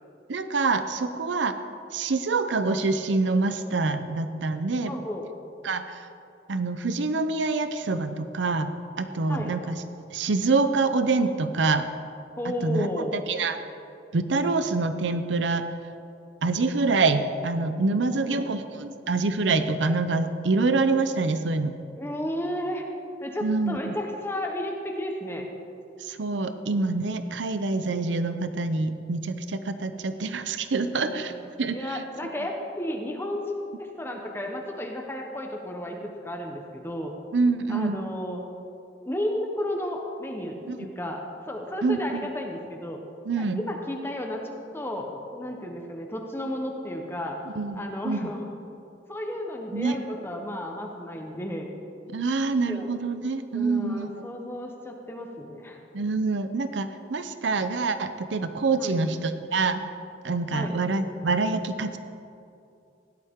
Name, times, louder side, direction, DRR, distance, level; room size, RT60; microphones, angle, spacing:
voice 1, 0.3-1.6 1.9-4.9 5.6-6.1 6.5-8.7 9.0-9.8 10.1-11.9 12.6-13.6 14.1-15.6 16.4-21.8 23.4-23.9 26.0-32.0 37.3-38.0 40.7-40.8 41.8-42.3 43.3-43.6 47.6-48.3 49.7-50.0 52.1-54.3 55.9-59.8 60.2-62.0, right 3 dB, 90° right, 10 dB, 0.6 m, -26 dB
voice 2, 4.9-5.3 9.3-9.5 12.4-13.2 18.1-18.6 22.0-22.8 23.2-25.5 30.8-31.4 31.7-37.2 37.7-38.4 39.0-43.0 43.4-44.4 44.7-47.4 47.7-48.5 49.1-51.7 52.6-52.9 53.5-55.8 58.7-59.0 60.5-60.8, left 1 dB, 15° left, 2 dB, 1.0 m, -33 dB
16.5 x 11.5 x 3.7 m, 2.6 s
head